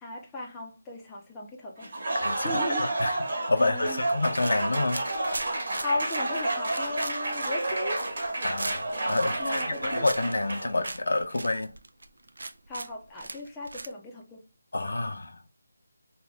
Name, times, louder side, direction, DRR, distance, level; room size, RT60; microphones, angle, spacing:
voice 1, 0.0-1.9 2.4-2.9 3.6-4.0 5.8-8.0 9.4-10.0 12.7-14.4, left 2 dB, 10° left, 0.4 m, -36 dB
Applause, 1.8-11.2, right 2 dB, 50° right, 1.1 m, -30 dB
voice 2, 2.2-2.5 2.8-3.2 3.5-5.0 8.4-11.7 14.7-15.5, left 2 dB, 80° left, 0.5 m, -28 dB
sound 1, 3.9-13.9, right 2 dB, 80° right, 0.4 m, -40 dB
2.5 x 2.1 x 3.3 m
figure-of-eight pair, 170°, 0 cm